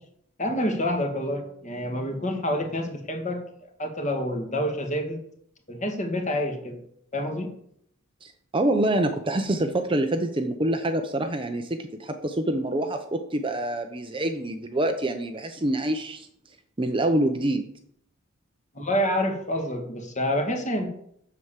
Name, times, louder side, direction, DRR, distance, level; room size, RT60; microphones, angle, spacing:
voice 1, 0.4-3.4 3.8-5.2 5.7-6.8 7.1-7.5 18.7-20.9, equal, 30° left, 3 dB, 1.9 m, -27 dB
voice 2, 8.2-16.3 16.8-17.7, right 1 dB, 20° right, 6 dB, 0.7 m, -26 dB
7.9 x 7.0 x 7.4 m, 0.70 s
head